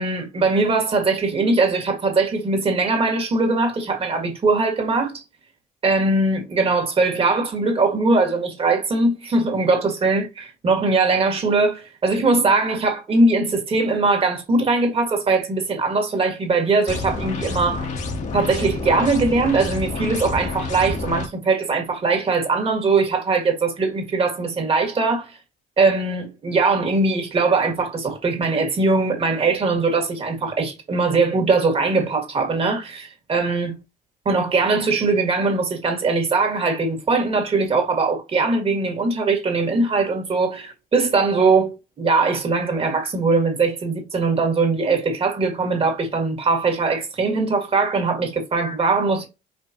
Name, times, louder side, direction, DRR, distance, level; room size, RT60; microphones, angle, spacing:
voice 1, 0.0-5.2 5.8-17.9 18.3-25.3 25.8-33.8 34.3-49.3, right 3 dB, 35° right, 1.9 m, -21 dB
sound 1, 16.9-21.3, left 3 dB, 45° left, 1.3 m, -28 dB
5.2 x 3.3 x 2.9 m
cardioid pair, 110°, 17 cm